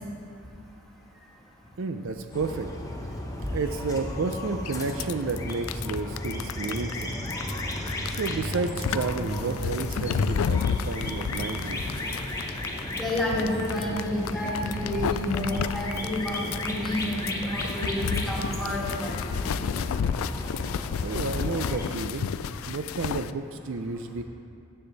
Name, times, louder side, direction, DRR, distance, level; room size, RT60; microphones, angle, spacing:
voice 1, 1.8-2.7 3.4-7.1 7.8-10.6 10.9-12.0 21.0-22.3 22.6-24.2, right 4 dB, 65° right, 8 dB, 0.5 m, -31 dB
sound 1, 2.3-21.9, left 1 dB, 15° left, 0.9 m, -35 dB
sound 2, 4.3-4.4 4.7-23.3, left 7 dB, 75° left, 0.3 m, -32 dB
Truck, 6.0-18.3, right 1 dB, 45° right, 1.8 m, -41 dB
voice 2, 13.0-19.2, left 1 dB, ahead, -6 dB, 2.2 m, -30 dB
14.0 x 7.8 x 4.0 m, 2.6 s
head